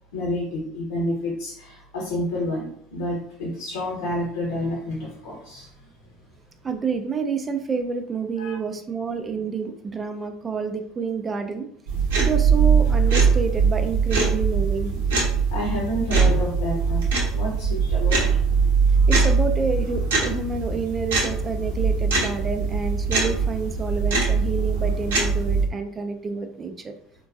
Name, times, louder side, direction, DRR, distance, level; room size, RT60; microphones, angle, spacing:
voice 1, 0.1-5.7 8.4-8.6 15.5-17.1 17.3-18.2 19.0-19.1, left 1 dB, 75° left, -3 dB, 0.9 m, -29 dB
voice 2, 6.6-11.7 12.2-15.0 19.1-26.9, right 5 dB, 25° right, 7 dB, 0.4 m, -28 dB
sound 1, 11.9-25.7, right 5 dB, 70° right, 0.8 m, -21 dB
3.7 x 2.5 x 2.4 m, 0.64 s
figure-of-eight pair, 65°, 0 cm